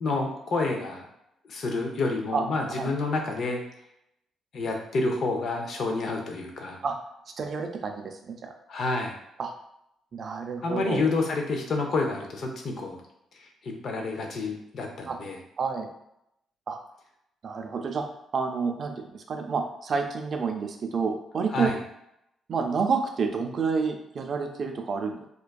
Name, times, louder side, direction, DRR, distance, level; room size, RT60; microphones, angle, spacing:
voice 1, 0.0-1.1 1.5-3.6 4.5-6.8 8.7-9.1 10.6-13.0 13.4-15.4 21.5-21.8, left 3 dB, 60° left, 2 dB, 0.5 m, -29 dB
voice 2, 7.4-8.5 9.4-9.5 10.1-11.0 15.1-15.2 15.6-15.9 16.7-16.8 17.4-18.0 18.3-21.7 22.5-25.3, right 5 dB, 50° right, 4 dB, 0.4 m, -29 dB
2.4 x 2.2 x 2.2 m, 0.80 s
cardioid pair, 90°, 0 cm